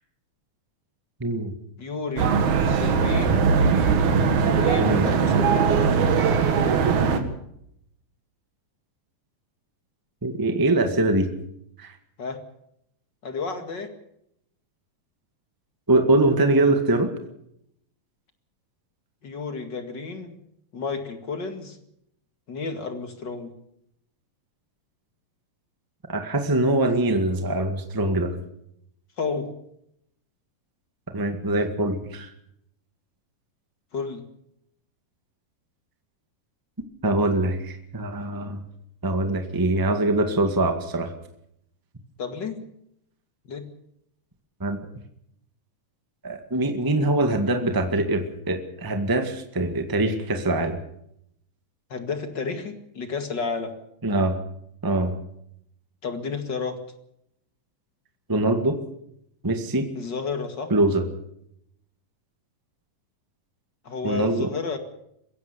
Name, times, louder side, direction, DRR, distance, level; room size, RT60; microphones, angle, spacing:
voice 1, 1.2-1.5 4.8-5.1 10.2-11.3 11.8-11.9 15.9-17.1 26.1-28.3 31.1-32.3 37.0-38.6 39.0-41.1 44.6-44.8 46.2-50.8 54.0-54.3 54.8-55.1 58.3-58.8 59.4-59.9 60.7-61.0 64.0-64.5, right 2 dB, 25° right, 6 dB, 0.4 m, -23 dB
voice 2, 1.8-2.3 2.8-3.5 4.4-5.8 12.2-12.4 13.2-13.9 19.2-20.4 20.7-21.8 22.5-23.5 29.2-29.5 33.9-34.2 42.2-42.6 43.5-43.6 51.9-53.7 56.0-56.8 60.0-60.7 63.8-64.8, left 4 dB, 35° left, 7 dB, 2.1 m, -31 dB
sound 1, 2.2-7.2, right 5 dB, 60° right, 3.0 m, -20 dB
23.0 x 16.5 x 6.9 m, 0.75 s
omnidirectional pair, 4.2 m